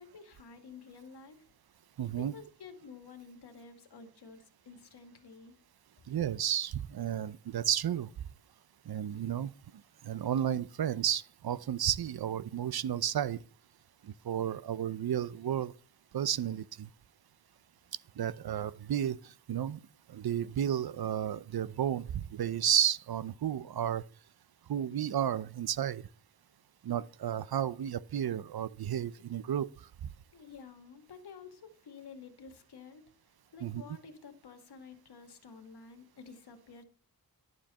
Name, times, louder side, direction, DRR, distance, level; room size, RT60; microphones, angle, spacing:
voice 1, 0.0-1.4 2.2-5.6 30.3-33.0 33.5-36.8, left 5 dB, 85° left, 2.0 m, -51 dB
voice 2, 2.0-2.3 6.1-8.1 8.9-9.5 10.0-13.4 14.0-15.7 16.1-16.9 18.2-19.8 20.1-24.0 24.7-26.0 26.8-29.7 33.6-33.8, right 10 dB, 75° right, 0.7 m, -32 dB
11.5 x 7.5 x 5.4 m
wide cardioid pair, 110°, 38 cm